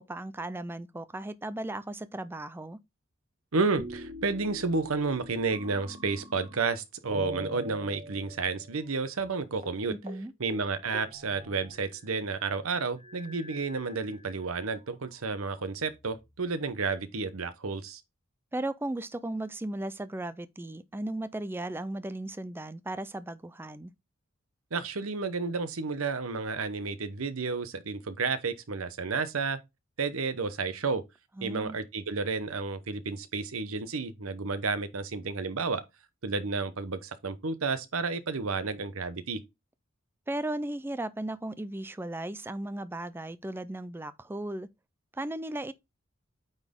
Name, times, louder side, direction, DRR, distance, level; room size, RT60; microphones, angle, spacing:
voice 1, 0.0-2.8 9.9-10.3 18.5-23.9 31.4-31.8 40.3-44.7 45.1-45.7, right 1 dB, 10° right, 0.4 m, -36 dB
voice 2, 3.5-9.9 10.4-18.0 24.7-29.6 30.0-31.0 31.4-35.8 36.2-39.4, right 4 dB, 90° right, 0.9 m, -31 dB
sound 1, 3.8-6.7 7.1-8.9 9.2-9.3 9.6-9.8 10.1-10.2 10.5-12.2 13.0-14.6 15.3-16.2, equal, 30° right, 1.2 m, -44 dB
9.0 x 4.0 x 3.6 m
head